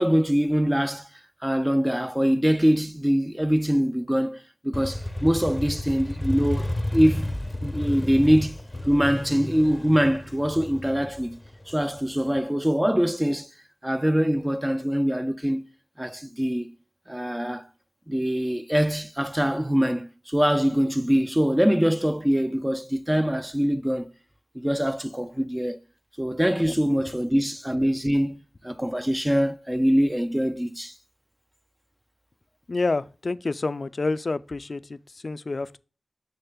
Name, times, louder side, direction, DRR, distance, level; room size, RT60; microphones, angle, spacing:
voice 1, 0.0-7.3 7.6-8.6 8.9-11.4 11.7-13.5 13.8-15.6 16.0-16.7 17.1-17.7 18.1-24.1 24.5-25.8 26.2-30.9, equal, 10° right, 0.4 m, -23 dB
Motorcycle, 4.7-12.4, left 1 dB, 20° left, 0.6 m, -32 dB
voice 2, 32.7-35.8, left 3 dB, 60° left, 0.3 m, -28 dB
6.5 x 6.5 x 2.2 m
wide cardioid pair, 55°, 0 cm